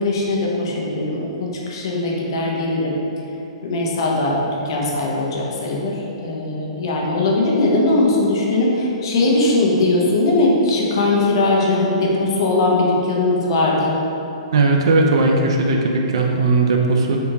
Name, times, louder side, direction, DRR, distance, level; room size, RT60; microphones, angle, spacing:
voice 1, 0.0-3.0 3.6-14.0, left 2 dB, 45° left, -3 dB, 0.5 m, -20 dB
voice 2, 14.5-17.2, right 3 dB, 55° right, 2 dB, 0.3 m, -17 dB
3.4 x 2.7 x 2.8 m, 2.8 s
hypercardioid pair, 175°, 3 cm